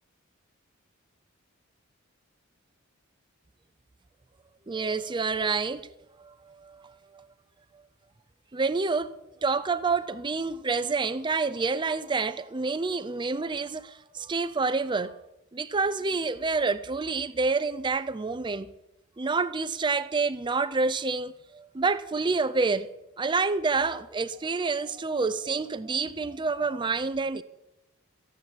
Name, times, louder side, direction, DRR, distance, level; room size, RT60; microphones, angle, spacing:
voice 1, 4.7-5.9 6.2-7.3 8.5-9.1 9.4-15.2 15.5-18.7 19.2-22.9 23.2-27.4, right 4 dB, 20° right, 0.5 m, -28 dB
14.5 x 9.5 x 7.9 m
head